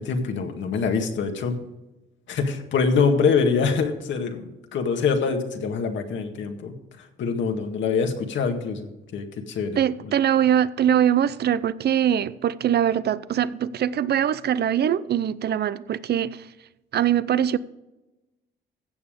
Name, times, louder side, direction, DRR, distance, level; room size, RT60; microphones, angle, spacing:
voice 1, 0.0-1.6 2.3-10.1, left 5 dB, 70° left, 1.9 m, -25 dB
voice 2, 9.8-16.5 16.9-17.6, right 10 dB, 55° right, 0.6 m, -22 dB
15.5 x 7.0 x 5.2 m
cardioid pair, 90°, 20 cm